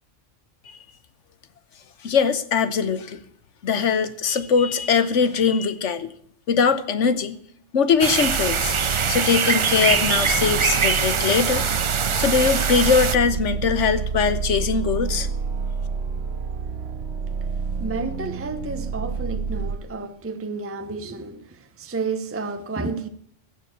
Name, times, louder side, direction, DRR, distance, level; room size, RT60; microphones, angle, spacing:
voice 1, 2.0-3.2 3.6-6.1 6.5-7.4 7.7-11.7 12.2-15.3, left 6 dB, 75° left, 1.3 m, -21 dB
sound 1, 8.0-13.2, right 6 dB, 45° right, 0.4 m, -23 dB
sound 2, 8.3-19.8, right 6 dB, 60° right, 1.1 m, -29 dB
voice 2, 17.8-23.1, right 3 dB, 15° right, 0.7 m, -31 dB
15.0 x 6.9 x 8.6 m
omnidirectional pair, 1.2 m